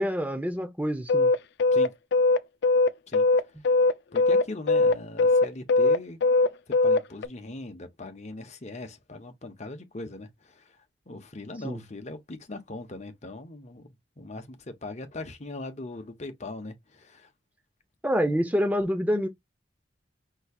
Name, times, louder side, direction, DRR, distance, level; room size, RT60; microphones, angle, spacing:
voice 1, 0.0-1.3 11.6-11.8 18.0-19.3, equal, 10° right, 0.9 m, -26 dB
sound 1, 1.1-7.3, left 3 dB, 65° left, 0.4 m, -20 dB
voice 2, 4.1-6.2 6.7-17.3, left 2 dB, 40° left, 0.9 m, -40 dB
5.5 x 3.1 x 2.4 m
head